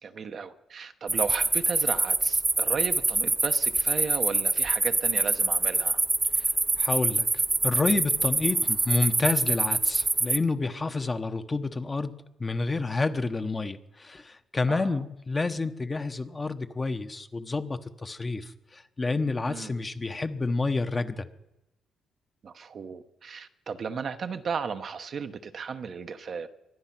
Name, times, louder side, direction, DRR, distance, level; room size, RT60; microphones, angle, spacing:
voice 1, 0.0-6.0 14.7-15.0 19.5-19.7 22.4-26.5, right 6 dB, 50° right, 8 dB, 1.0 m, -35 dB
sound 1, 1.1-10.4, right 3 dB, 20° right, 0.6 m, -25 dB
voice 2, 6.8-21.3, left 3 dB, 25° left, 8 dB, 1.0 m, -29 dB
23.5 x 9.9 x 6.0 m, 0.90 s
cardioid pair, 90°, 0 cm